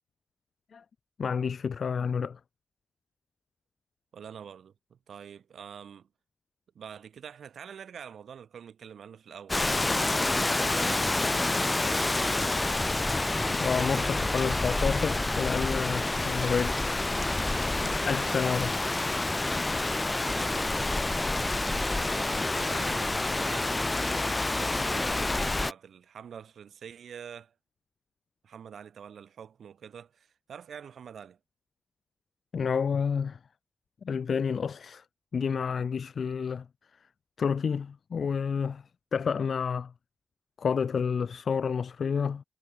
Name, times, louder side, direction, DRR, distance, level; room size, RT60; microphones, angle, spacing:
voice 1, 1.2-2.4 13.5-16.8 17.8-18.7 32.5-33.4 34.0-35.0 35.3-36.6 37.4-38.8 39.1-39.9 40.6-42.4, left 6 dB, 75° left, 1.4 m, -29 dB
voice 2, 4.1-6.1 6.8-13.3 13.7-14.9 17.5-18.4 20.3-20.9 21.3-23.7 24.5-27.5 28.4-31.4, right 8 dB, 85° right, 2.0 m, -45 dB
Rain, 9.5-25.7, left 2 dB, 30° left, 1.5 m, -28 dB
cardioid pair, 45°, 0 cm